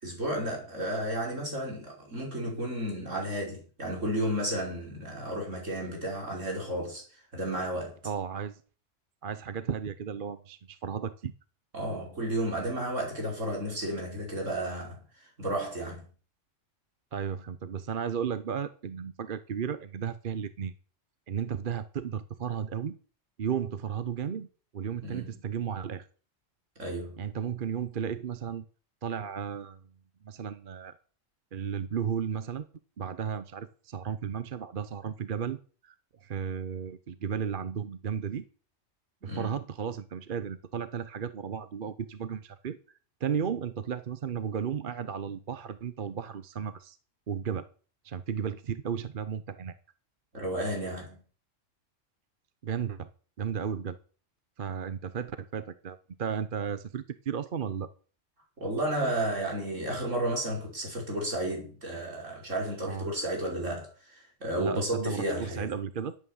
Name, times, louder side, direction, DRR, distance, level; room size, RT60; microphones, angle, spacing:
voice 1, 0.0-8.0 11.7-15.0 15.4-16.0 25.0-25.4 26.8-27.2 39.2-39.6 50.3-51.2 58.6-65.7, right 1 dB, 70° right, 5.5 m, -32 dB
voice 2, 8.0-8.6 9.2-11.3 17.1-20.7 21.3-23.0 23.4-24.5 24.7-26.1 27.2-28.6 29.0-29.8 30.2-31.0 31.5-32.7 33.0-35.6 35.8-35.9 36.2-38.4 39.2-42.8 43.2-47.0 47.3-47.7 48.0-49.7 52.6-53.1 53.4-54.0 54.6-57.9 62.8-63.1 64.6-66.2, right 7 dB, 45° right, 0.9 m, -34 dB
13.0 x 8.7 x 7.2 m
omnidirectional pair, 1.3 m